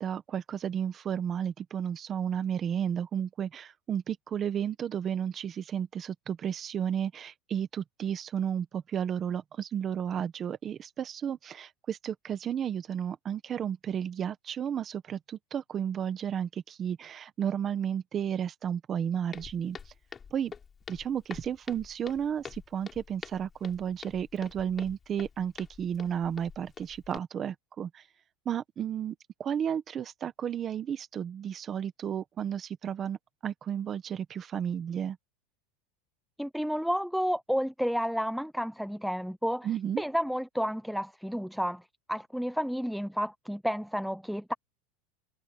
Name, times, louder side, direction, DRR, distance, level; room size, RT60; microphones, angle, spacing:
voice 1, 0.0-19.8 20.3-20.5 20.9-28.0 28.4-29.1 29.4-35.2 39.6-40.0, right 8 dB, 25° right, 1.2 m, -33 dB
Walk footsteps, 19.3-27.2, left 6 dB, 15° left, 4.6 m, -47 dB
voice 2, 36.4-39.7 40.0-41.8 42.1-44.5, equal, ahead, 0.4 m, -31 dB
supercardioid pair, 165°, 0 cm